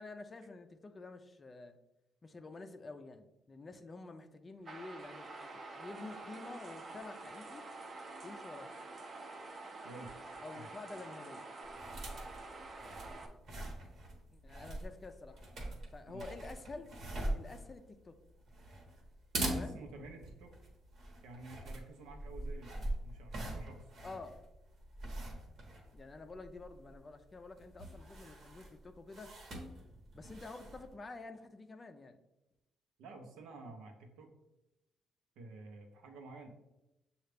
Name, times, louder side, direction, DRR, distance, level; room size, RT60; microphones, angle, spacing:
voice 1, 0.0-1.8 2.2-7.6 8.2-8.7 10.4-11.5 14.3-15.4 15.9-16.9 17.3-18.2 19.5-19.8 24.0-24.4 25.9-29.3 30.1-32.2, left 3 dB, 30° left, 8 dB, 0.4 m, -49 dB
sound 1, 4.6-13.3, right 3 dB, 45° right, 0.6 m, -48 dB
sound 2, 11.6-31.0, right 1 dB, 60° right, 1.1 m, -44 dB
voice 2, 19.5-20.5 21.2-23.9 33.0-34.3 35.4-36.5, right 2 dB, 90° right, 4 dB, 0.8 m, -51 dB
6.5 x 2.4 x 3.3 m, 0.94 s
cardioid pair, 90°, 0 cm